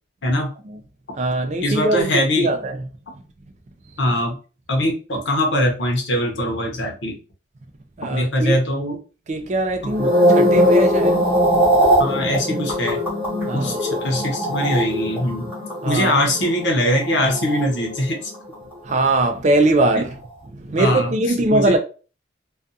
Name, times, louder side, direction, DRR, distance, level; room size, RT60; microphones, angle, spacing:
voice 1, 0.2-0.5 1.6-2.5 4.0-4.4 4.7-7.2 8.0-9.0 9.8-10.1 12.0-13.0 13.5-15.5 15.8-18.3 19.9-20.0 20.8-21.1 21.5-21.8, left 1 dB, 60° left, 0.8 m, -22 dB
voice 2, 1.1-2.8 8.0-8.6 9.3-10.1 10.3-11.3 13.5-13.9 15.8-16.1 18.8-20.1 20.5-21.8, right 2 dB, 35° right, 0.3 m, -21 dB
sound 1, 9.9-18.3 18.5-18.9, equal, 10° right, 1.0 m, -20 dB
2.4 x 2.3 x 2.6 m
head